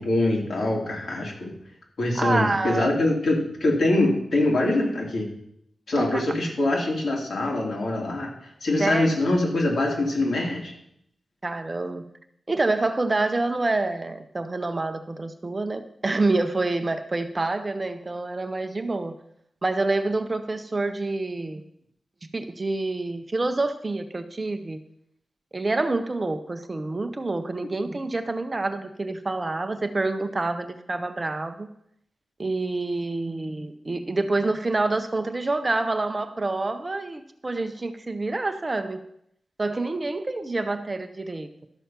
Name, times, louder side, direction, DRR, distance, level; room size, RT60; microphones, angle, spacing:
voice 1, 0.0-1.5 2.0-5.3 5.9-10.7, left 2 dB, 60° left, -2 dB, 3.3 m, -24 dB
voice 2, 2.1-2.9 5.9-6.2 8.8-9.1 11.4-12.0 12.5-19.2 19.6-21.6 22.2-24.8 25.5-31.7 32.4-39.0 39.6-41.5, right 2 dB, 25° right, 8 dB, 0.6 m, -27 dB
12.5 x 7.1 x 5.8 m, 0.72 s
wide cardioid pair, 165°, 0 cm